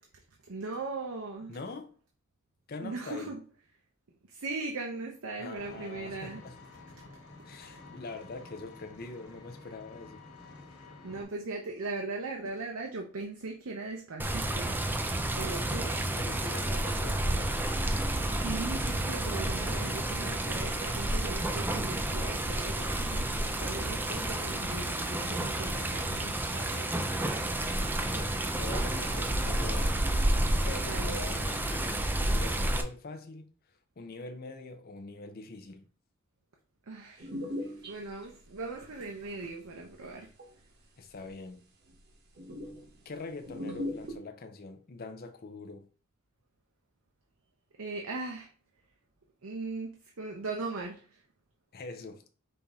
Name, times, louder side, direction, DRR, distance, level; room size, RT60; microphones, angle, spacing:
voice 1, 0.5-1.6 2.8-3.4 4.3-6.4 11.0-14.8 15.4-16.1 18.3-27.0 30.9-31.2 36.9-37.3 37.8-40.3 47.8-48.5 49.4-51.2, right 3 dB, 75° right, 0.7 m, -39 dB
voice 2, 1.5-1.9 2.7-3.3 5.4-6.6 7.4-10.2 16.2-17.6 28.1-30.1 30.7-35.9 41.0-41.6 43.0-45.9 51.7-52.2, left 3 dB, 45° left, 0.6 m, -43 dB
Vehicle, 5.6-11.2, left 3 dB, 90° left, 1.5 m, -51 dB
Water, 14.2-32.8, right 1 dB, 10° right, 0.4 m, -30 dB
sound 1, 37.2-38.9 39.2-40.5 41.2-41.3 41.6-41.7 41.9-42.0 42.4-43.0 43.4-44.2, left 1 dB, 50° right, 1.1 m, -39 dB
5.3 x 2.8 x 3.5 m
head